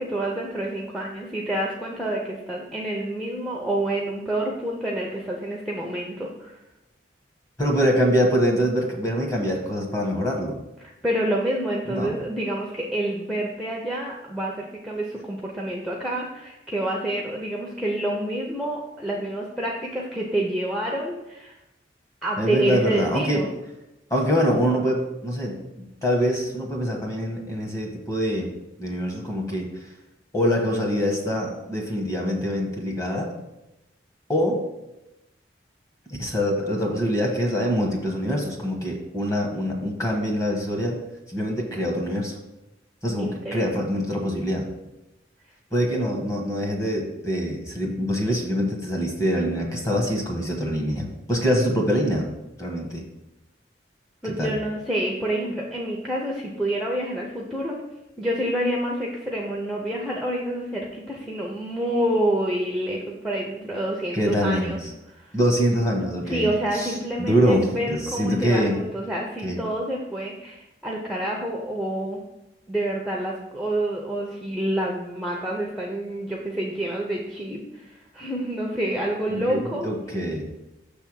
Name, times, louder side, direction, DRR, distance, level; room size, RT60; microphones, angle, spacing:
voice 1, 0.0-6.6 10.8-21.6 22.2-23.5 43.1-43.7 54.2-57.8 58.2-64.8 65.1-65.4 66.3-72.2 72.7-79.9, right 1 dB, ahead, -2 dB, 0.6 m, -28 dB
voice 2, 7.6-10.5 11.9-12.1 22.4-23.4 24.1-25.6 26.0-28.5 28.8-29.9 30.3-33.3 34.3-34.6 36.1-41.0 41.3-42.4 43.0-44.7 45.7-52.2 52.6-53.0 54.2-54.5 64.1-64.9 65.3-68.8 69.4-69.6 79.3-80.5, equal, 15° left, 1 dB, 1.1 m, -24 dB
6.4 x 3.4 x 6.1 m, 0.95 s
head